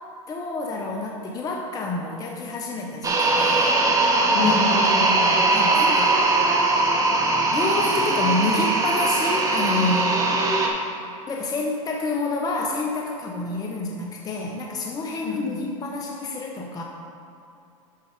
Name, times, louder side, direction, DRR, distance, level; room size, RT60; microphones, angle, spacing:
voice 1, 0.3-3.8 4.4-4.5 5.5-6.3 7.5-10.4 11.3-16.8, left 3 dB, 20° left, 0 dB, 0.8 m, -28 dB
sound 1, 3.0-10.7, right 2 dB, 20° right, 1.2 m, -20 dB
voice 2, 4.3-5.4 15.2-15.6, left 3 dB, 60° left, 0 dB, 1.6 m, -26 dB
12.0 x 5.2 x 3.4 m, 2.5 s
hypercardioid pair, 110°, 17 cm